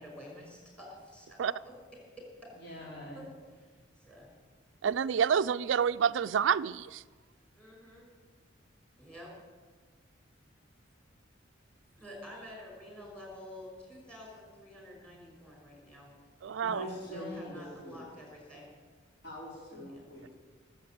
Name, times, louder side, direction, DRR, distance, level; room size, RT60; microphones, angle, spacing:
voice 1, 0.0-1.4 1.6-1.7 2.7-2.9 3.1-3.3 3.5-3.7 4.1-4.3 7.6-8.1 9.0-9.3 12.0-16.2 16.6-18.7 19.9-20.0, left 1 dB, 5° left, -1 dB, 5.5 m, -49 dB
voice 2, 2.6-3.2 16.6-18.0 19.2-20.3, equal, 55° left, -4 dB, 4.9 m, -43 dB
voice 3, 4.8-7.0 16.4-16.8, right 7 dB, 70° right, 13 dB, 0.4 m, -28 dB
18.0 x 7.9 x 8.7 m, 1.4 s
head